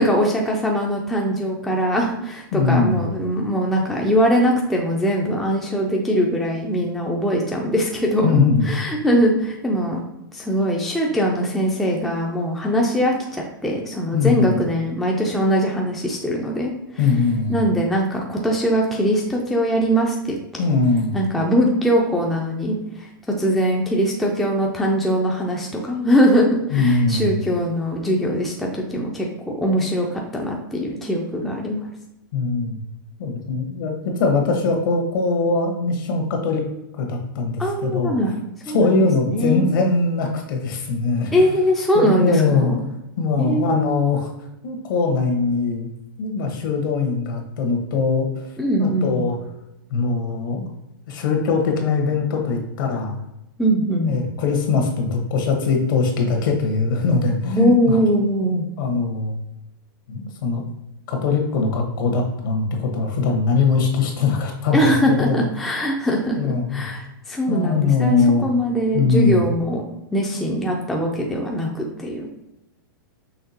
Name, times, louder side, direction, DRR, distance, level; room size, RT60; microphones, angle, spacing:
voice 1, 0.0-8.3 8.7-10.0 10.3-17.0 17.5-20.6 21.1-23.1 23.4-29.3 29.6-31.9 37.6-38.3 38.7-39.6 41.3-42.8 43.4-44.0 48.6-49.2 53.6-54.1 57.6-58.7 64.7-69.8 70.1-72.3, equal, ahead, -1 dB, 0.4 m, -21 dB
voice 2, 2.5-3.0 8.2-8.6 14.1-14.5 17.0-17.6 20.6-21.1 26.7-27.3 32.3-32.8 33.2-36.6 37.0-38.1 38.7-41.5 41.9-42.7 43.2-44.3 44.6-45.9 46.2-48.3 48.8-49.3 49.9-50.7 51.1-53.1 54.0-58.0 58.4-59.3 60.1-60.6 61.1-65.4 66.4-66.8 67.5-68.4 68.9-69.4, left 4 dB, 65° left, 2 dB, 1.3 m, -21 dB
5.8 x 3.3 x 2.8 m, 0.88 s
supercardioid pair, 160°, 12 cm